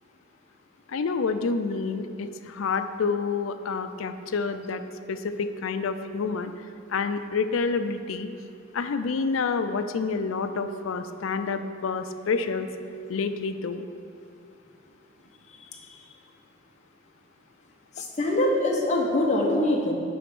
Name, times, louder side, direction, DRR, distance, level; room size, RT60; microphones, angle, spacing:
voice 1, 0.9-4.8 5.1-6.6 6.9-8.3 8.7-12.7 13.1-13.9, left 4 dB, 80° left, 9 dB, 0.4 m, -28 dB
voice 2, 18.0-19.9, left 1 dB, 35° left, -2 dB, 1.1 m, -23 dB
10.0 x 3.4 x 6.1 m, 2.5 s
head